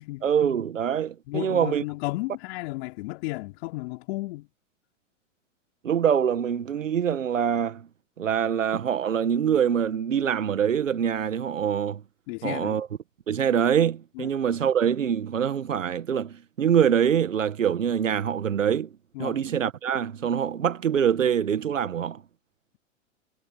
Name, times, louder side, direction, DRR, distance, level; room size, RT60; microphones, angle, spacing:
voice 1, 0.2-1.8 5.8-7.9 8.2-12.0 12.4-12.9 13.3-18.9 19.2-22.2, right 8 dB, 90° right, 1.6 m, -24 dB
voice 2, 1.3-4.5 12.3-12.8 14.2-14.3 19.1-19.4, left 21 dB, 55° left, 4.2 m, -33 dB
hypercardioid pair, 110°, 37 cm